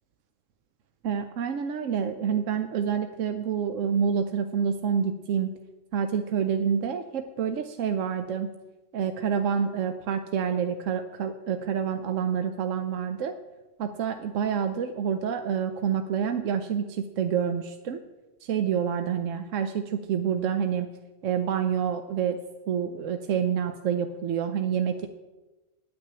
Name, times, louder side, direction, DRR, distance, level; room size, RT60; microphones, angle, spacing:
voice 1, 1.0-5.5 5.9-8.5 8.9-13.3 13.8-18.0 18.4-20.9 21.2-22.4 22.7-25.1, right 7 dB, 85° right, 7 dB, 1.1 m, -27 dB
9.8 x 6.1 x 8.8 m, 1.1 s
omnidirectional pair, 1.3 m